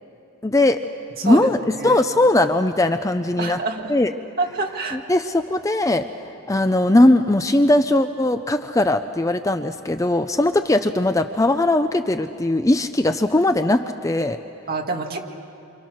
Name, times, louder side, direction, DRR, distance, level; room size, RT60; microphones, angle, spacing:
voice 1, 0.4-0.8 1.2-3.6 3.9-4.1 4.9-6.0 6.5-14.4, left 1 dB, 15° left, 8 dB, 0.5 m, -19 dB
voice 2, 1.2-2.0 3.4-3.9 4.4-5.0 14.7-15.2, right 3 dB, 45° right, 2 dB, 2.0 m, -27 dB
28.0 x 27.0 x 6.4 m, 2.7 s
head